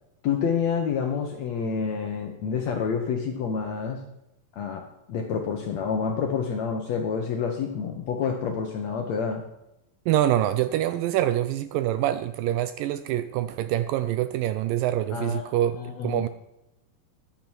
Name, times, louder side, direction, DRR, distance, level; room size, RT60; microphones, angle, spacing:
voice 1, 0.2-4.0 4.5-9.4 15.1-16.3, left 6 dB, 70° left, 3 dB, 1.7 m, -28 dB
voice 2, 10.1-16.3, right 12 dB, 80° right, 12 dB, 2.0 m, -25 dB
14.0 x 10.0 x 4.5 m, 0.88 s
omnidirectional pair, 4.3 m